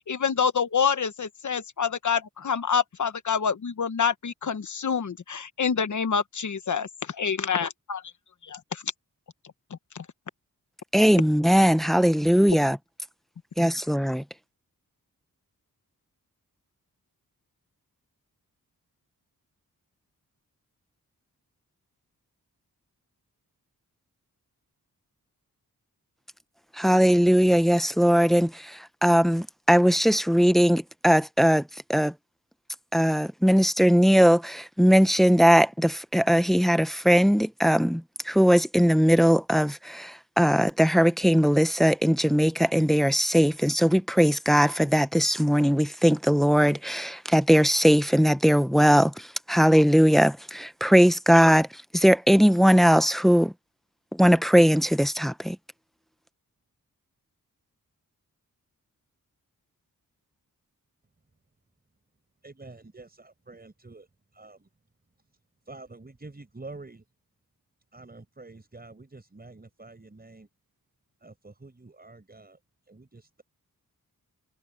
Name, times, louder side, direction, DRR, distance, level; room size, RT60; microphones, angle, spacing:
voice 1, 0.0-8.1 8.4-8.8 9.9-10.0, left 6 dB, 55° left, 1.2 m, -27 dB
voice 2, 10.9-12.8 13.6-14.2 26.7-32.1 32.9-53.5 54.1-55.6, equal, ahead, 0.7 m, -20 dB
voice 3, 62.4-64.7 65.6-67.0 67.9-70.5 71.2-72.6 72.9-73.4, right 3 dB, 25° right, 5.0 m, -47 dB
wide cardioid pair, 125°, 35 cm